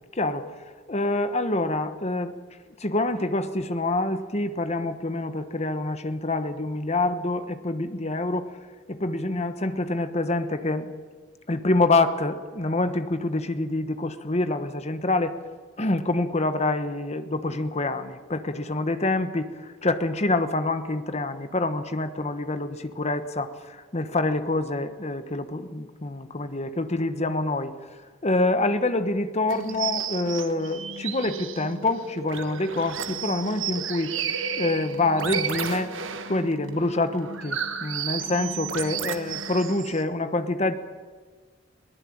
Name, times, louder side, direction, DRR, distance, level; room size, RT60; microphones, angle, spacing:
voice 1, 0.1-0.5 0.9-2.3 2.8-8.5 8.9-10.9 11.5-15.4 15.8-27.7 28.2-34.1 34.6-35.9 36.3-40.8, left 2 dB, 35° left, 10 dB, 1.2 m, -26 dB
sound 1, 29.5-40.0, right 7 dB, 70° right, 1.6 m, -33 dB
21.5 x 18.0 x 8.8 m, 1.5 s
head